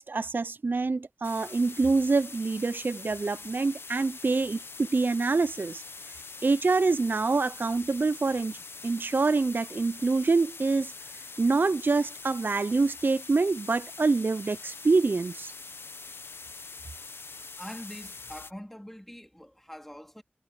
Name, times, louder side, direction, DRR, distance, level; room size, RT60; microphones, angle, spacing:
voice 1, 0.0-5.8 6.4-8.6 8.8-10.9 11.4-15.5, right 3 dB, 60° right, 0.4 m, -26 dB
sound 1, 1.2-18.5, left 4 dB, 80° left, 0.8 m, -44 dB
voice 2, 17.6-20.2, equal, 5° left, 2.8 m, -43 dB
wide cardioid pair, 45°, 4 cm